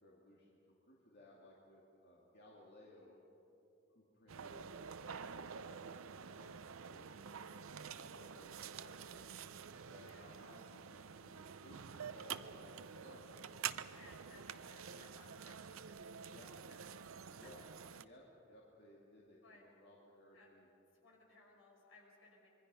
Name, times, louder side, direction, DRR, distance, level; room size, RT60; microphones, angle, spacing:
voice 1, 0.0-0.6 0.9-3.2 3.9-4.7 5.0-9.2 9.9-14.1 15.0-15.1 16.3-16.6 17.3-17.7 18.0-20.7, left 1 dB, 55° left, -4 dB, 2.5 m, -61 dB
sound 1, 4.3-18.0, right 7 dB, 85° right, 0.6 m, -48 dB
voice 2, 9.9-10.3 13.9-16.9 17.4-17.5 19.4-19.6 20.3-20.5 21.0-22.5, left 2 dB, 75° left, -2 dB, 5.9 m, -63 dB
25.5 x 22.5 x 5.6 m, 2.9 s
head